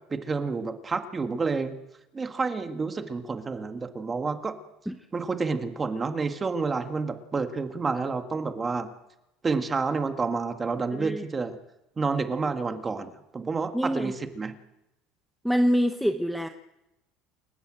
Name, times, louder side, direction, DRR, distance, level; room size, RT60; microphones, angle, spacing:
voice 1, 0.1-1.8 2.1-4.5 5.1-8.9 9.4-11.5 12.0-14.5, right 4 dB, 20° right, 7 dB, 1.8 m, -29 dB
voice 2, 10.9-11.2 13.7-14.1 15.4-16.5, equal, ahead, 6 dB, 0.9 m, -25 dB
28.5 x 14.5 x 9.0 m, 0.90 s
cardioid pair, 150°, 0 cm